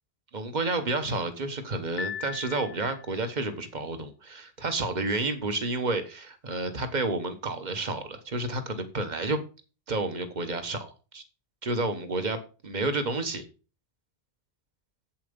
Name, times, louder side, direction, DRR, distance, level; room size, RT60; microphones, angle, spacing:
voice 1, 0.3-9.4 9.9-11.2 11.6-13.4, right 2 dB, 45° right, 9 dB, 1.3 m, -30 dB
Piano, 2.0-3.3, left 7 dB, 70° left, 0.9 m, -38 dB
7.9 x 7.4 x 5.3 m, 0.35 s
omnidirectional pair, 1.1 m